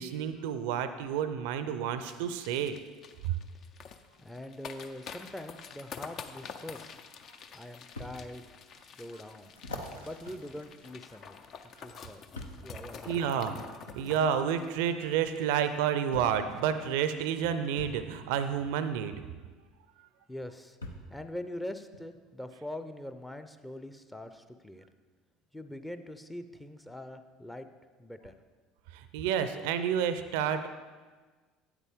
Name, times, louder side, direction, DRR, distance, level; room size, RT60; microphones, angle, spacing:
voice 1, 0.0-2.8 3.2-3.4 10.0-10.1 13.0-13.7 13.9-19.2 28.9-30.7, right 8 dB, 70° right, 11 dB, 0.4 m, -30 dB
sound 1, 2.1-15.9 16.2-16.3 16.5-16.8 17.2-17.4, left 6 dB, 50° left, 0.5 m, -48 dB
voice 2, 4.2-7.0 7.5-8.6 8.8-9.5 10.0-11.4 11.8-12.3 12.6-13.2 20.3-20.8 21.1-24.8 25.5-27.7 28.0-28.3, left 1 dB, 5° left, 9 dB, 0.6 m, -43 dB
sound 2, 8.0-8.1 8.8-8.9 9.6-11.5 12.3-12.7 13.9-14.0 15.3-15.4 16.1-16.5 17.8-18.0 19.6-19.7 20.8-21.1 21.9-22.0, left 2 dB, 85° left, 0.8 m, -43 dB
8.8 x 8.1 x 3.6 m, 1.4 s
hypercardioid pair, 65°, 0 cm